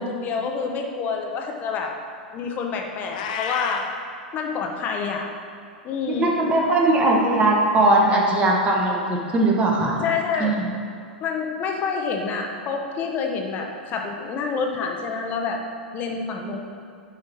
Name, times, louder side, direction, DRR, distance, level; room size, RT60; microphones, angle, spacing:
voice 1, 0.0-1.9 2.3-3.8 4.3-5.2 5.8-6.3 9.8-10.5 11.2-15.6 15.9-16.6, left 5 dB, 30° left, 2 dB, 1.0 m, -27 dB
Meow, 3.1-3.9, left 6 dB, 55° left, 0.7 m, -30 dB
voice 2, 6.2-10.0 10.4-10.6, right 2 dB, 25° right, -1 dB, 1.3 m, -19 dB
9.3 x 4.9 x 4.3 m, 2.3 s
figure-of-eight pair, 95°, 5 cm